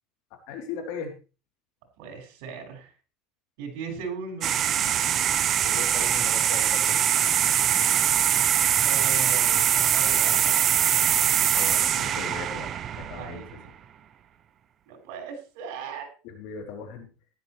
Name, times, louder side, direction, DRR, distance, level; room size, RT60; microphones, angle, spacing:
voice 1, 0.5-1.1 5.7-7.6 11.5-13.4 16.2-17.1, left 6 dB, 65° left, 3 dB, 3.5 m, -38 dB
voice 2, 2.0-2.9 3.6-5.3 8.8-10.7 13.2-13.7 14.9-16.1, right 5 dB, 75° right, 3 dB, 5.8 m, -38 dB
sound 1, 4.4-13.6, right 10 dB, 35° right, 0.8 m, -23 dB
15.0 x 12.0 x 3.3 m, 0.34 s
cardioid pair, 155°, 0 cm